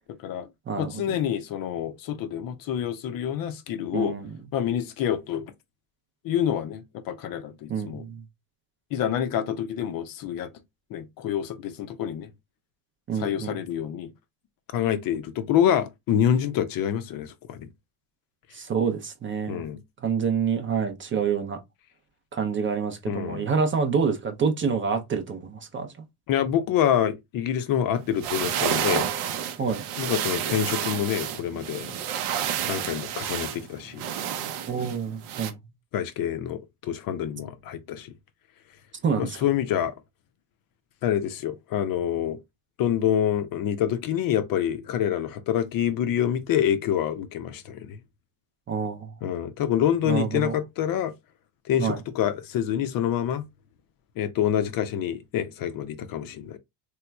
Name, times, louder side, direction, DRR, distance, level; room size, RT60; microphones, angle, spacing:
voice 1, 0.0-0.5 0.8-4.1 4.5-5.5 6.2-8.0 8.9-10.5 10.9-12.3 13.2-14.1 14.7-17.7 19.5-19.8 23.1-23.5 26.3-29.1 30.0-31.9 32.7-34.0 35.9-38.1 39.2-39.9 41.0-42.4 42.8-48.0 49.2-51.1 51.6-53.4 54.2-56.6, left 9 dB, 45° left, 0.5 m, -27 dB
voice 2, 0.7-1.0 3.9-4.3 7.7-8.2 13.1-13.6 18.5-19.6 20.0-21.6 22.3-25.9 29.6-29.8 34.7-35.6 39.0-39.4 48.7-49.1 50.1-50.6 51.8-52.0, right 6 dB, 25° right, 0.5 m, -27 dB
sound 1, 28.0-35.5, right 9 dB, 80° right, 0.8 m, -30 dB
3.4 x 2.9 x 2.2 m
supercardioid pair, 110°, 49 cm